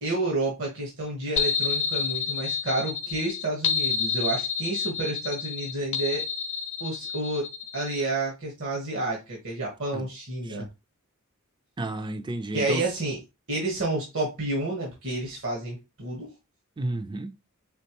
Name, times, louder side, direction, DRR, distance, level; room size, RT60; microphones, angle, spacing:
voice 1, 0.0-6.2 6.8-7.5 7.7-10.7 12.5-13.2 13.5-16.3, right 2 dB, 65° right, 1.4 m, -30 dB
sound 1, 1.4-8.0, left 6 dB, 60° left, 0.7 m, -29 dB
voice 2, 11.8-12.8 16.8-17.4, right 1 dB, 20° right, 0.4 m, -32 dB
4.3 x 3.8 x 3.0 m
head